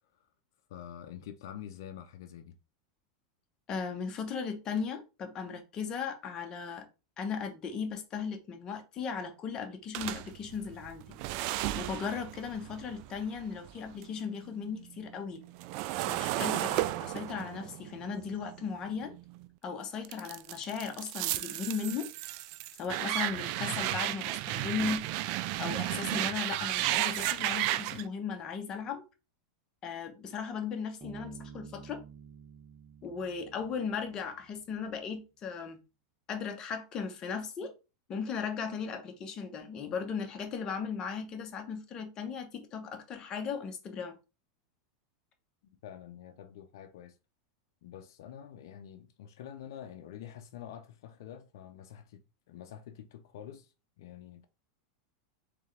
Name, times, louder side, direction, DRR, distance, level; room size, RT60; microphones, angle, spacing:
voice 1, 0.7-2.6 45.8-47.2 47.8-54.5, left 10 dB, 75° left, 0.5 m, -47 dB
voice 2, 3.7-6.9 7.2-11.2 11.7-15.4 16.1-19.1 19.6-22.1 22.8-25.2 25.6-29.1 29.8-32.0 33.0-35.8 36.3-37.7 38.1-44.2, left 6 dB, 35° left, 1.0 m, -37 dB
sound 1, 9.9-14.2 14.6-19.5 20.0-28.0, right 15 dB, 55° right, 0.3 m, -34 dB
Bass guitar, 31.0-34.6, right 6 dB, 15° right, 1.4 m, -50 dB
3.5 x 3.3 x 3.3 m
supercardioid pair, 120°, 2 cm